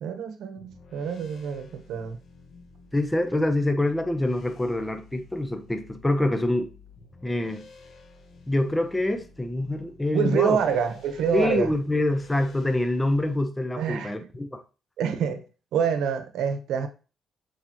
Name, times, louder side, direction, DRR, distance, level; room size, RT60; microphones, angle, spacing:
voice 1, 0.0-2.2 10.1-11.7 13.8-14.1 15.0-15.5 15.7-16.9, right 7 dB, 80° right, 1.0 m, -26 dB
sound 1, 0.5-13.4, left 3 dB, 60° left, 1.5 m, -51 dB
voice 2, 2.9-6.7 7.2-7.7 8.5-10.6 11.3-14.6, left 1 dB, 10° left, 0.8 m, -25 dB
6.6 x 5.0 x 3.0 m
cardioid pair, 90°, 0 cm